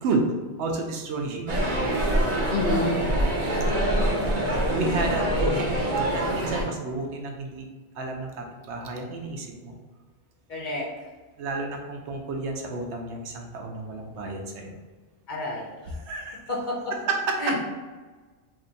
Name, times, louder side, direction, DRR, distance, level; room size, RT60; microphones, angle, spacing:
voice 1, 0.6-1.7 4.7-7.7 8.0-9.8 11.4-14.7 15.8-16.4 16.9-17.6, right 3 dB, 75° right, 2 dB, 0.9 m, -31 dB
sound 1, 1.5-6.6, right 1 dB, 45° right, 0.7 m, -25 dB
voice 2, 2.5-3.0 10.5-10.9 15.3-15.7 16.5-16.8 17.4-17.6, left 2 dB, 55° left, -3 dB, 0.6 m, -28 dB
2.7 x 2.5 x 3.8 m, 1.3 s
omnidirectional pair, 1.2 m